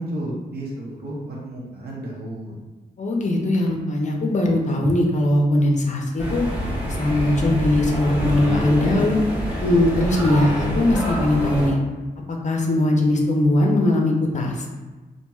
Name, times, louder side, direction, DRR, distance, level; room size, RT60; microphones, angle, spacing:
voice 1, 0.0-2.6, right 1 dB, 70° right, -3 dB, 0.7 m, -32 dB
voice 2, 3.0-6.5 6.9-9.2 9.6-11.8 12.3-14.7, left 1 dB, 45° left, 1 dB, 0.5 m, -20 dB
sound 1, 6.2-11.7, equal, 10° right, 1.0 m, -26 dB
2.9 x 2.5 x 2.3 m, 1.2 s
wide cardioid pair, 105°, 17 cm